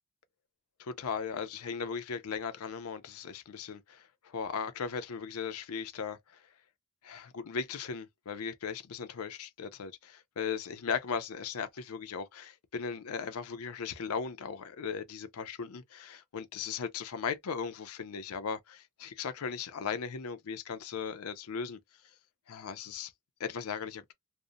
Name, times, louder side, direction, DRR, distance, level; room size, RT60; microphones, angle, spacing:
voice 1, 0.8-6.4 7.0-21.8 22.5-23.1 23.4-24.1, left 6 dB, 80° left, 0.5 m, -37 dB
2.5 x 2.0 x 2.6 m
head